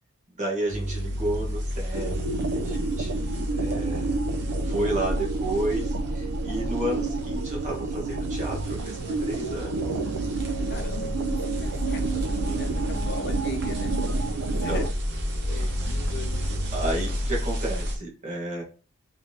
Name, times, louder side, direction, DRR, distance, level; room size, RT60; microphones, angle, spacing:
voice 1, 0.4-4.2 4.6-9.8 12.3-13.0 14.5-14.9 15.5-15.7 16.7-18.6, right 1 dB, 35° right, -1 dB, 1.3 m, -32 dB
sound 1, 0.7-18.0, equal, 50° right, 0.8 m, -31 dB
sound 2, 1.9-14.9, right 4 dB, 85° right, 0.4 m, -30 dB
voice 2, 9.8-10.3 10.7-13.9 14.4-14.9 15.5-16.6, left 3 dB, 50° left, 6 dB, 0.5 m, -39 dB
3.5 x 3.2 x 2.7 m, 0.35 s
head